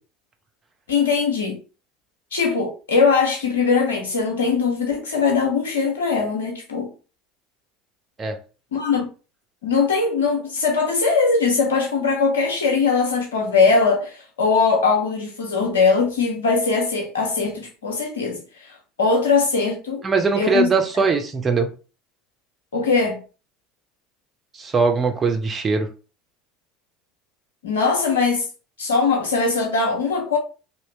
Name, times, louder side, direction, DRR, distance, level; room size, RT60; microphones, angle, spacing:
voice 1, 0.9-1.6 2.3-6.9 8.7-9.1 9.6-18.4 19.0-20.0 20.4-20.7 22.7-23.2 27.6-28.5 28.8-30.4, left 4 dB, 80° left, 0.9 m, -20 dB
voice 2, 20.0-21.7 24.5-25.9, right 4 dB, 30° right, 0.8 m, -21 dB
2.9 x 2.4 x 3.2 m
hypercardioid pair, 75°, 0 cm